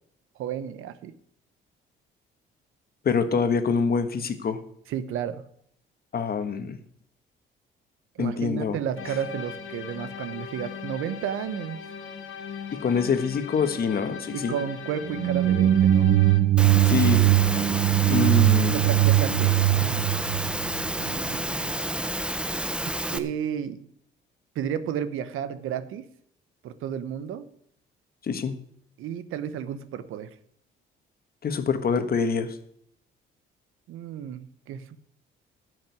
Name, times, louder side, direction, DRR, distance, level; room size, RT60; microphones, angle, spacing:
voice 1, 0.4-1.1 4.9-5.4 8.2-11.8 14.3-16.2 18.7-20.2 21.0-21.8 23.1-23.8 24.5-26.0 26.6-27.5 29.0-30.3 33.9-35.0, right 9 dB, 80° right, 13 dB, 1.0 m, -32 dB
voice 2, 3.0-4.6 6.1-6.8 8.2-8.8 12.8-14.5 16.9-17.3 18.1-18.8 28.2-28.5 31.4-32.6, left 5 dB, 45° left, 9 dB, 1.4 m, -25 dB
sound 1, 9.0-16.4, left 6 dB, 75° left, 2.2 m, -39 dB
sound 2, 15.1-21.1, right 14 dB, 55° right, 0.7 m, -20 dB
Engine / Mechanisms, 16.6-23.2, right 1 dB, 5° right, 0.8 m, -30 dB
11.5 x 6.5 x 9.4 m, 0.68 s
cardioid pair, 90°, 21 cm